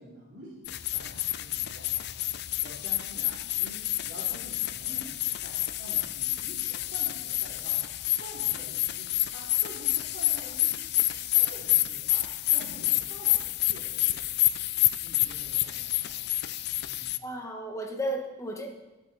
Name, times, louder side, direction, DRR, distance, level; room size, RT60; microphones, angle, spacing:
voice 1, 0.0-7.8 8.1-14.5 15.0-16.5 16.8-17.1, equal, 55° right, -7 dB, 3.0 m, -48 dB
sound 1, 0.6-17.2, left 16 dB, 55° left, 0.4 m, -28 dB
voice 2, 17.2-18.7, right 1 dB, 15° left, 3 dB, 1.5 m, -33 dB
22.0 x 7.4 x 4.2 m, 1.1 s
head